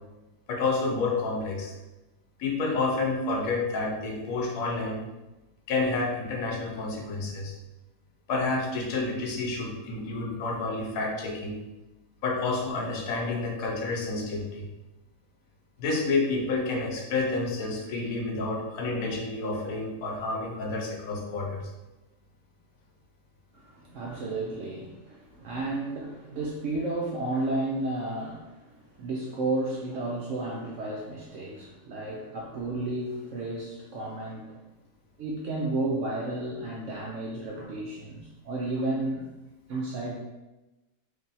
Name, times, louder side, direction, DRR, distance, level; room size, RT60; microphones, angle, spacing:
voice 1, 0.5-1.7 2.4-5.0 5.7-7.5 8.3-11.5 12.2-14.7 15.8-21.6, left 3 dB, 65° left, 0 dB, 1.0 m, -29 dB
voice 2, 23.5-34.6 35.2-39.3 39.7-40.2, right 2 dB, 80° right, -2 dB, 0.6 m, -32 dB
3.3 x 2.6 x 3.9 m, 1.0 s
omnidirectional pair, 1.8 m